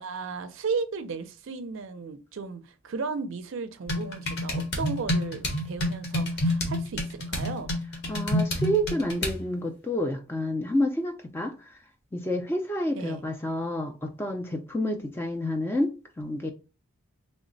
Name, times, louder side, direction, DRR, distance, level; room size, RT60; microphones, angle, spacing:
voice 1, 0.0-7.7 12.9-13.2, right 4 dB, 55° right, 0.4 m, -35 dB
sound 1, 3.9-9.4, left 1 dB, 50° left, 0.9 m, -29 dB
voice 2, 8.1-11.5 12.1-16.5, equal, 10° left, 0.3 m, -29 dB
3.2 x 2.0 x 3.8 m
head